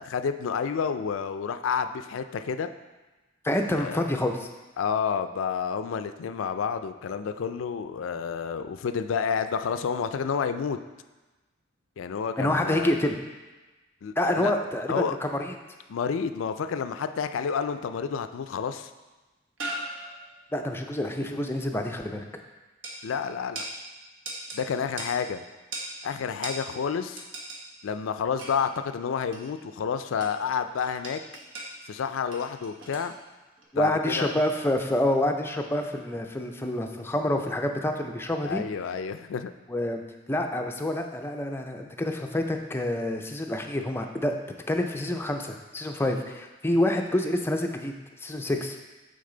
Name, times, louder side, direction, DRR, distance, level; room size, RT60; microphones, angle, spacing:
voice 1, 0.0-2.7 3.8-4.0 4.8-10.8 12.0-12.9 14.0-14.5 14.9-15.2 15.9-18.9 23.0-23.7 24.5-25.4 26.0-27.3 27.8-31.2 31.9-33.1 33.8-34.3 38.4-39.5, left 6 dB, 80° left, 10 dB, 0.4 m, -30 dB
voice 2, 3.4-4.5 12.4-13.2 14.2-15.5 20.5-22.3 33.7-38.6 39.7-40.0 40.3-44.3 44.7-47.9 48.2-48.8, left 1 dB, 10° left, 4 dB, 0.4 m, -27 dB
sound 1, 17.8-17.9 19.0-19.1 19.6-20.4 22.8-23.0 23.5-23.7 24.2-24.6 25.0-25.1 25.7-25.9 26.4-26.6 27.2-27.6 28.4-28.7 29.3-29.6 30.2-30.5 30.8-31.8 32.3-33.1 33.6-33.7, right 2 dB, 70° right, 1.2 m, -38 dB
8.7 x 4.0 x 3.8 m, 1.2 s
head